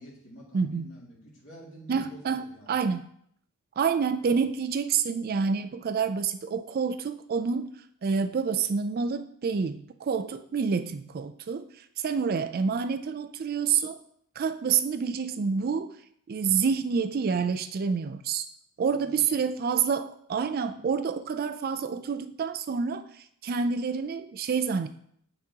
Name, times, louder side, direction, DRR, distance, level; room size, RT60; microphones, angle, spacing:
voice 1, 0.0-2.8 4.2-4.4 18.8-19.5 20.7-20.8, equal, 60° left, -4 dB, 2.3 m, -49 dB
voice 2, 0.5-0.9 1.9-3.1 3.8-7.7 8.0-14.0 14.4-15.9 16.3-18.5 18.8-24.9, right 6 dB, 40° right, 10 dB, 0.3 m, -28 dB
7.8 x 5.9 x 2.8 m, 0.67 s
head